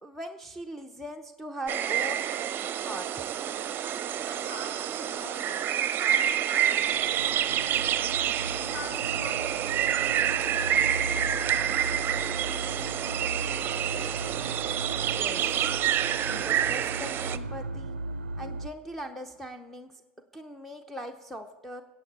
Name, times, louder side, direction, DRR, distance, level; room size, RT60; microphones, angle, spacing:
voice 1, 0.0-2.3 2.8-3.2 15.0-15.8 16.2-18.0 18.4-19.9 20.3-21.8, equal, 5° left, 8 dB, 0.7 m, -40 dB
sound 1, 1.7-17.4, right 10 dB, 35° right, 0.6 m, -28 dB
voice 2, 4.2-7.8 8.3-11.0 11.5-12.7, left 1 dB, 45° left, 0 dB, 4.2 m, -46 dB
sound 2, 6.8-18.7, right 2 dB, 90° right, 0.4 m, -37 dB
22.0 x 8.3 x 4.2 m, 1.3 s
hypercardioid pair, 80°, 6 cm